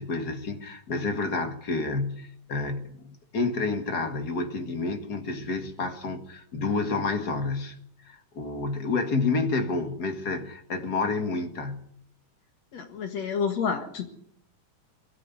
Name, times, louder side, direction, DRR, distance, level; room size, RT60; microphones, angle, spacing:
voice 1, 0.0-7.8 8.1-11.9, left 3 dB, 35° left, 1.8 m, -29 dB
voice 2, 12.7-14.1, left 6 dB, 55° left, 2.6 m, -29 dB
21.0 x 13.5 x 9.6 m
omnidirectional pair, 3.8 m